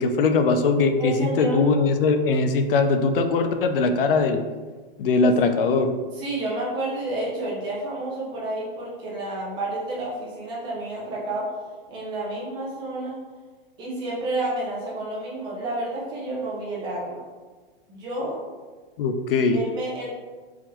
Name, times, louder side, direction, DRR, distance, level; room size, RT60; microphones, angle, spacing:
voice 1, 0.0-4.4 5.0-5.9 19.0-19.6, left 4 dB, 70° left, 7 dB, 0.5 m, -21 dB
voice 2, 1.0-1.6 6.1-11.5 11.9-13.2 13.8-17.2 17.9-18.4 19.5-20.1, right 2 dB, 15° right, -5 dB, 0.6 m, -30 dB
3.8 x 2.9 x 2.9 m, 1.4 s
hypercardioid pair, 160°, 29 cm